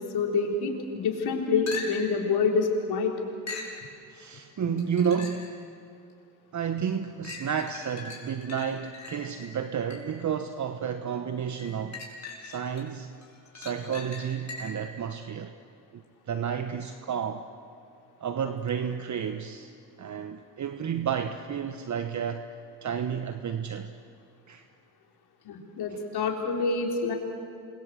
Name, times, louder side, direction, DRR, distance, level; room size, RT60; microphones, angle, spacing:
voice 1, 0.1-3.1 25.4-27.1, left 4 dB, 65° left, 1 dB, 4.1 m, -27 dB
sound 1, 1.7-2.2 3.5-3.8 4.8-5.5 6.1-6.2 7.2-10.2 11.6-12.8 13.2-14.9 18.7-18.8, left 4 dB, 40° left, 5.9 m, -41 dB
voice 2, 4.1-5.6 6.5-13.1 13.5-15.5 15.9-16.0 16.3-17.5 18.2-19.7 20.0-22.4 22.8-23.9 24.5-24.6 25.9-26.0, right 7 dB, 40° right, 8 dB, 1.2 m, -31 dB
27.5 x 23.0 x 8.0 m, 2.4 s
supercardioid pair, 70°, 42 cm